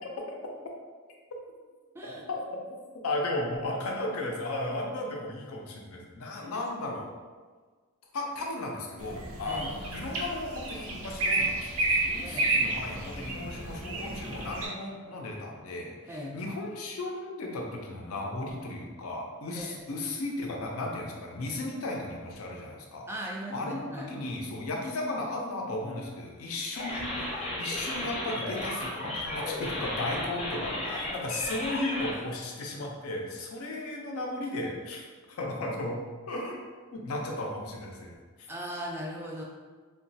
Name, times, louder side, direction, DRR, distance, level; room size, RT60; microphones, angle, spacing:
voice 1, 0.0-0.4 1.3-1.4 2.0-2.6 3.0-7.1 8.1-23.1 23.5-36.0 36.3-36.6 36.9-38.1, left 2 dB, 85° left, 0 dB, 0.5 m, -35 dB
sound 1, 9.0-14.7, right 2 dB, 80° right, 0.5 m, -31 dB
voice 2, 12.2-12.5 16.1-16.4 19.5-19.8 23.1-24.1 38.5-39.4, equal, 10° right, -2 dB, 0.3 m, -38 dB
sound 2, 26.7-32.1, left 1 dB, 30° left, 0.7 m, -34 dB
3.0 x 2.2 x 2.6 m, 1.5 s
head